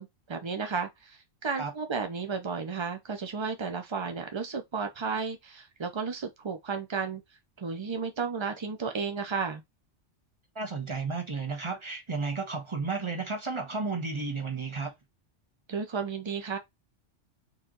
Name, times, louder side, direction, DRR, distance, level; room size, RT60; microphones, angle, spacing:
voice 1, 0.0-7.2 7.6-9.6 15.7-16.6, right 5 dB, 40° right, 0.4 m, -33 dB
voice 2, 10.5-14.9, right 4 dB, 25° right, 1.2 m, -33 dB
4.5 x 3.1 x 3.8 m
omnidirectional pair, 1.3 m